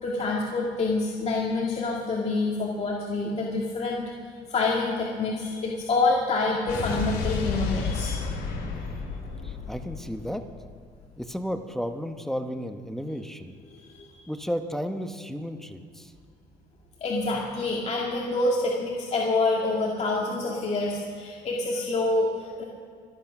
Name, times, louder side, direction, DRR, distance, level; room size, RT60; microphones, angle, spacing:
voice 1, 0.0-4.0 4.5-8.3 13.7-14.2 17.0-22.6, left 3 dB, 40° left, -3 dB, 2.1 m, -27 dB
Explosion, 6.7-11.0, left 5 dB, 75° left, 3.8 m, -32 dB
voice 2, 9.4-10.4 11.2-13.5 14.3-16.1, equal, ahead, 7 dB, 1.0 m, -33 dB
24.5 x 8.4 x 5.9 m, 2.1 s
cardioid pair, 110°, 17 cm